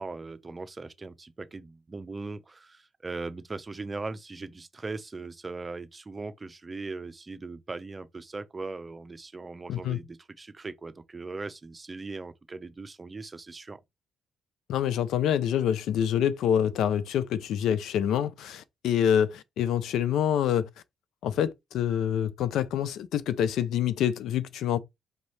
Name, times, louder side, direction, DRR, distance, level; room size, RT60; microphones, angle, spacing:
voice 1, 0.0-13.8, right 3 dB, 25° right, 0.6 m, -39 dB
voice 2, 14.7-20.7 21.2-24.8, left 9 dB, 80° left, 0.4 m, -26 dB
5.1 x 2.7 x 3.2 m
cardioid pair, 90°, 0 cm